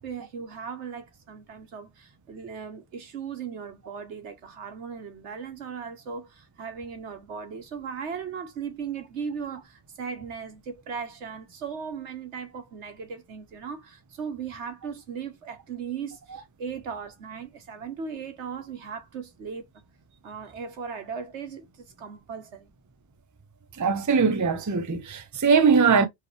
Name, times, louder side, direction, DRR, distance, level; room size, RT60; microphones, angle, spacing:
voice 1, 0.0-19.7 20.2-22.7, right 6 dB, 85° right, 1.4 m, -37 dB
voice 2, 23.8-26.1, right 5 dB, 20° right, 0.5 m, -21 dB
4.6 x 3.1 x 3.2 m
omnidirectional pair, 1.2 m